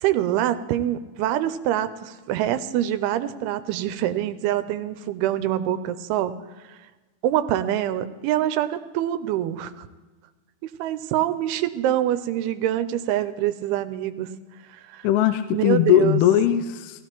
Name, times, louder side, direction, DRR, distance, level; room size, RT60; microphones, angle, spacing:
voice 1, 0.0-6.3 6.7-6.8 7.2-9.9 10.6-14.3 14.7-15.1 15.5-16.2, right 12 dB, 90° right, 11 dB, 2.6 m, -25 dB
voice 2, 15.0-17.1, left 11 dB, 85° left, 9 dB, 2.5 m, -19 dB
17.5 x 15.5 x 3.0 m, 1.2 s
omnidirectional pair, 4.5 m